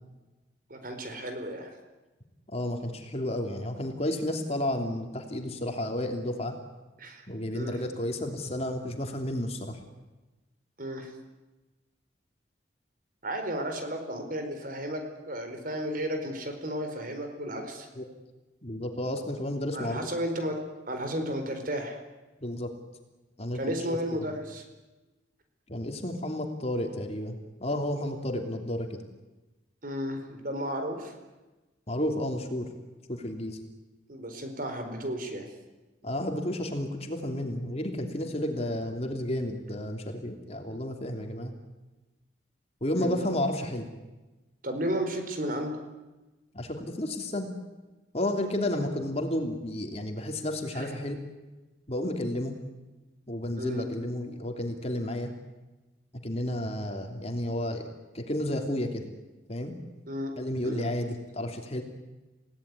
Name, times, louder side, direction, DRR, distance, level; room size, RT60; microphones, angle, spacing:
voice 1, 0.7-1.7 7.0-7.2 7.5-7.8 10.8-11.1 13.2-15.0 15.3-17.9 19.7-20.6 20.9-22.0 23.5-24.6 29.8-31.1 34.1-35.5 42.9-43.2 44.6-45.7 50.7-50.9 53.6-53.8 60.1-60.3 60.6-60.8, equal, 45° right, 6 dB, 4.5 m, -33 dB
voice 2, 2.5-6.5 7.3-9.8 18.0-18.1 18.6-20.0 22.4-22.7 23.4-23.6 23.9-24.3 25.7-29.0 31.9-32.7 33.1-33.6 36.0-41.5 42.8-43.9 46.5-47.5 48.1-51.2 51.9-52.5 53.3-55.3 56.2-57.9 58.1-59.1 59.5-59.7 60.4-61.8, left 1 dB, 35° left, 4 dB, 3.0 m, -32 dB
29.5 x 18.0 x 9.7 m, 1.1 s
head